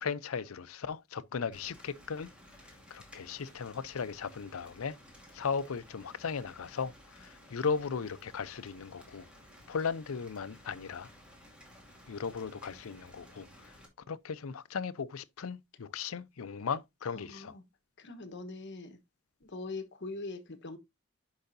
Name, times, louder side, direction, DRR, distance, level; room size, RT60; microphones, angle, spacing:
voice 1, 0.0-2.3 2.9-5.0 5.3-9.3 9.7-11.1 12.1-13.5 14.1-17.5, left 5 dB, 90° left, 0.6 m, -36 dB
Rain, 1.5-13.9, left 1 dB, 5° right, 2.3 m, -56 dB
voice 2, 17.1-17.6 18.0-19.0 19.4-20.8, left 3 dB, 55° left, 1.3 m, -42 dB
10.5 x 5.6 x 2.7 m
head